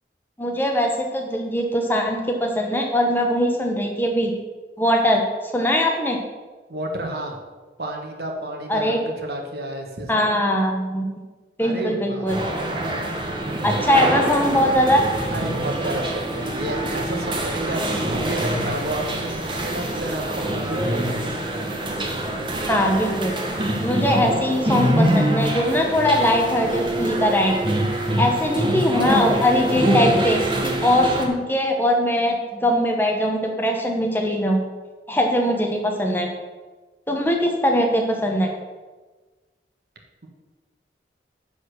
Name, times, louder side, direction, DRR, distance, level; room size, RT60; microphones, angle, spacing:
voice 1, 0.4-4.3 4.8-6.2 8.7-9.0 10.1-11.1 11.6-12.4 13.6-15.0 22.7-23.3 23.8-27.5 28.2-34.6 35.1-36.3 37.1-38.5, equal, 10° left, 1 dB, 1.0 m, -21 dB
voice 2, 6.7-7.4 7.8-10.3 11.6-12.3 15.3-21.4, right 1 dB, 60° right, 2 dB, 1.4 m, -31 dB
sound 1, 12.3-31.3, right 1 dB, 25° right, 1.0 m, -24 dB
9.9 x 4.2 x 6.5 m, 1.3 s
head